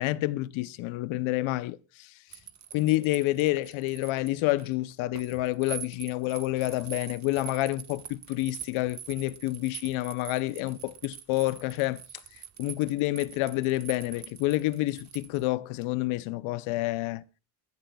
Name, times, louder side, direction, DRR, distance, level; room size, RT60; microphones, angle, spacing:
voice 1, 0.0-2.4 2.7-12.0 12.3-17.2, left 18 dB, 85° left, 0.8 m, -29 dB
sound 1, 2.3-15.4, right 8 dB, 35° right, 1.3 m, -44 dB
29.5 x 10.5 x 2.3 m
cardioid pair, 125°, 47 cm